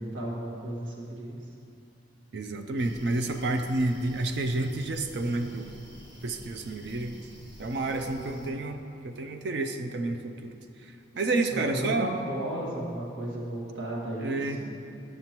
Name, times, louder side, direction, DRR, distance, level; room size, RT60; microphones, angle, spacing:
voice 1, 0.0-1.4 8.1-8.5 11.1-14.7, right 1 dB, 80° right, -4 dB, 1.6 m, -35 dB
voice 2, 2.3-5.7 6.2-7.2 7.6-10.5 10.8-12.1 14.2-14.6, right 2 dB, 60° right, 6 dB, 0.4 m, -30 dB
sound 1, 2.8-8.5, equal, 20° right, 1.3 m, -49 dB
10.5 x 6.7 x 2.9 m, 2.7 s
head